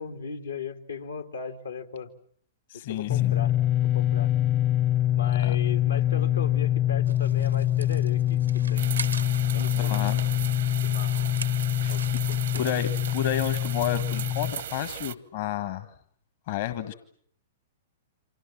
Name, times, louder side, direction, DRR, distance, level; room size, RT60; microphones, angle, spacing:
voice 1, 0.0-2.1 2.7-3.5 3.8-4.3 5.1-8.9 9.5-9.9 10.8-11.3 11.9-12.7, left 5 dB, 80° left, 8 dB, 2.1 m, -37 dB
voice 2, 2.7-3.3 5.4-5.6 9.8-10.2 11.8-12.0 12.5-15.9 16.5-16.9, left 11 dB, 50° left, 12 dB, 1.5 m, -31 dB
sound 1, 3.1-14.5, left 12 dB, 35° left, 1.1 m, -25 dB
sound 2, 7.0-15.0, right 5 dB, 85° right, 1.2 m, -43 dB
sound 3, 8.8-15.1, right 9 dB, 65° right, 1.1 m, -37 dB
28.5 x 25.5 x 7.4 m, 0.62 s
figure-of-eight pair, 105°, 0 cm